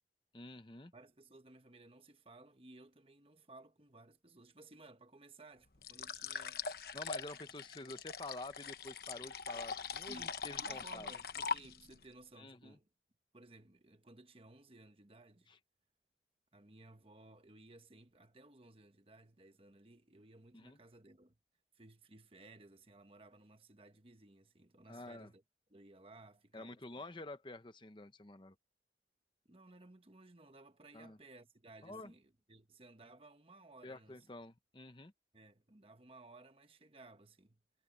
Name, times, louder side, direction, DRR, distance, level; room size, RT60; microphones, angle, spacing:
voice 1, 0.3-0.9 6.9-11.1 12.4-12.8 15.5-15.6 20.5-20.8 24.9-25.3 26.5-28.6 30.9-31.2 31.8-32.1 33.8-35.1, left 2 dB, 25° left, 0.9 m, -49 dB
voice 2, 0.9-6.6 10.1-12.9 13.3-15.5 16.5-21.4 21.7-25.4 25.7-27.0 29.5-34.3 35.3-37.6, right 2 dB, 30° right, 1.3 m, -59 dB
sound 1, 5.8-12.0, left 5 dB, 55° left, 1.1 m, -42 dB
head